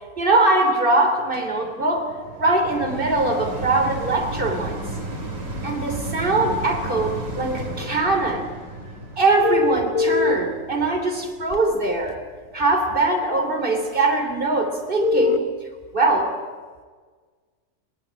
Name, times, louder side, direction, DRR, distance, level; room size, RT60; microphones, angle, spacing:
voice 1, 0.2-2.1 2.4-4.8 5.6-8.5 9.2-12.2 12.5-15.5 15.9-16.3, right 2 dB, 40° right, 4 dB, 3.5 m, -22 dB
sound 1, 1.3-12.6 13.2-13.3, right 1 dB, 85° right, 3.7 m, -34 dB
sound 2, 9.4-10.3 11.5-11.6 15.0-15.4, left 6 dB, 85° left, 1.5 m, -20 dB
22.0 x 20.0 x 8.8 m, 1.5 s
omnidirectional pair, 1.3 m